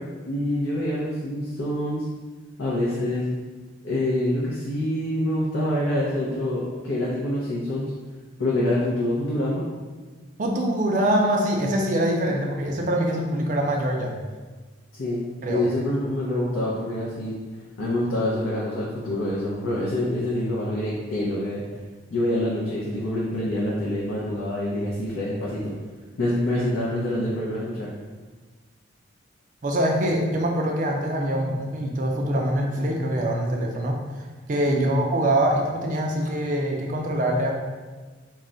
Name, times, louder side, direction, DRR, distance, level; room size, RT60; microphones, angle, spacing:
voice 1, 0.3-2.0 2.6-3.2 3.8-7.8 8.4-9.6 14.9-17.3 17.8-21.6 22.1-25.7 26.2-27.9 34.7-35.0, left 1 dB, 80° left, -6 dB, 0.5 m, -26 dB
voice 2, 10.4-14.1 15.4-15.6 26.5-26.7 29.6-34.0 34.5-37.5, right 1 dB, 40° right, 0 dB, 0.3 m, -24 dB
2.3 x 2.0 x 3.7 m, 1.4 s
head